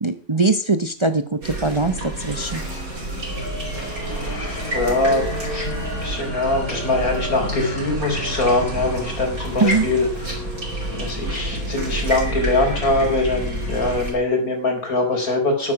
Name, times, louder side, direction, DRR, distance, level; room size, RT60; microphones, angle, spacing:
voice 1, 0.0-2.6 9.6-9.8, right 3 dB, 25° right, 10 dB, 0.7 m, -21 dB
sound 1, 1.4-14.1, right 1 dB, 80° right, 5.9 m, -28 dB
voice 2, 3.7-5.7 6.0-10.5 10.9-15.7, left 2 dB, 90° left, 3 dB, 4.8 m, -23 dB
12.5 x 11.0 x 5.9 m, 0.41 s
omnidirectional pair, 1.5 m